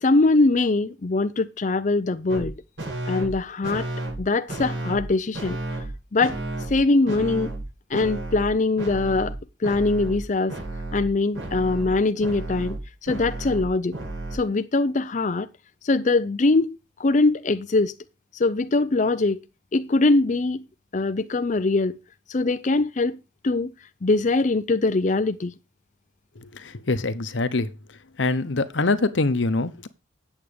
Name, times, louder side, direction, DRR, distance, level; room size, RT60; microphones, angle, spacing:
voice 1, 0.0-2.5 3.1-3.9 4.2-5.6 6.1-6.4 6.7-7.5 7.9-9.3 9.6-10.5 10.9-12.8 13.0-13.9 14.3-15.5 15.8-17.9 18.3-19.4 19.7-20.6 20.9-22.0 22.3-23.2 23.4-23.7 24.0-25.5, left 3 dB, 40° left, 0.5 m, -22 dB
sound 1, 2.3-2.5 2.8-3.3 3.6-4.2 4.5-5.1 5.3-5.9 6.2-6.8 7.1-7.6 7.9-8.5 8.8-9.4 9.6-10.2 10.5-14.4, right 2 dB, 85° right, 7.3 m, -32 dB
voice 2, 26.9-27.7 28.2-29.9, left 3 dB, 85° left, 1.0 m, -23 dB
9.0 x 7.6 x 5.1 m
head